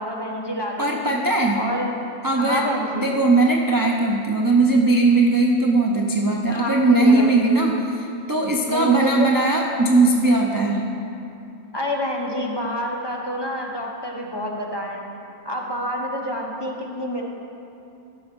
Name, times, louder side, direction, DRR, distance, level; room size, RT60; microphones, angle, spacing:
voice 1, 0.0-1.2 1.6-2.1 2.4-3.2 6.5-7.6 8.7-9.3 11.7-15.0 15.4-17.2, equal, 20° left, -1 dB, 1.0 m, -27 dB
voice 2, 0.8-1.6 2.2-2.6 2.9-7.7 8.3-10.8, right 2 dB, 25° right, -1 dB, 0.5 m, -19 dB
14.0 x 6.2 x 5.3 m, 2.7 s
omnidirectional pair, 1.3 m